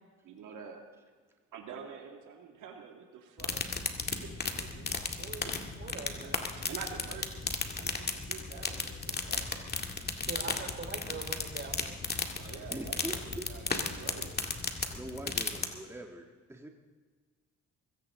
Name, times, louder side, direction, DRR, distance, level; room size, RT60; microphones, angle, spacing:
voice 1, 0.2-0.8 1.5-3.6 4.1-4.8 5.4-5.7 6.1-6.3 6.6-7.5 7.8-9.5 10.7-10.8 12.4-14.3, right 6 dB, 85° right, 1 dB, 2.3 m, -47 dB
sound 1, 3.4-15.7, left 4 dB, 30° left, 2.0 m, -35 dB
voice 2, 5.2-6.4 10.1-12.0, right 4 dB, 40° right, 3 dB, 4.1 m, -43 dB
voice 3, 12.7-13.5 14.9-16.7, right 1 dB, 10° right, 2 dB, 1.6 m, -43 dB
23.0 x 16.5 x 3.8 m, 1.5 s
cardioid pair, 90°, 30 cm